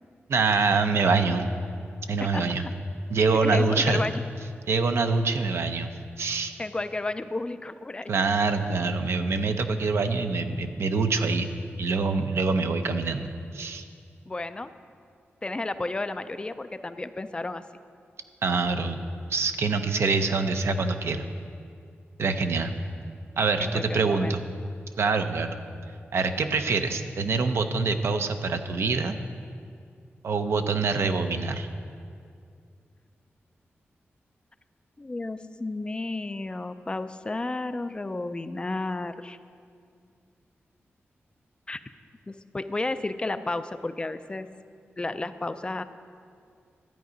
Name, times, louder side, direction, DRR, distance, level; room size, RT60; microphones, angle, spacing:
voice 1, 0.3-1.5 2.1-2.6 3.1-4.0 4.7-6.5 8.1-11.5 11.8-13.8 18.4-19.0 19.3-21.3 22.2-22.7 23.4-24.4 25.0-25.6 26.1-29.2 30.2-31.7, right 4 dB, 75° right, 7 dB, 0.7 m, -25 dB
voice 2, 2.3-2.7 3.4-4.2 5.3-5.4 6.6-8.1 14.3-14.7 15.4-17.6 23.6-24.3 35.0-39.4 41.7-41.8 42.3-44.5 45.0-45.8, left 2 dB, 20° left, 11 dB, 0.4 m, -32 dB
12.5 x 9.3 x 5.1 m, 2.3 s
wide cardioid pair, 135°, 4 cm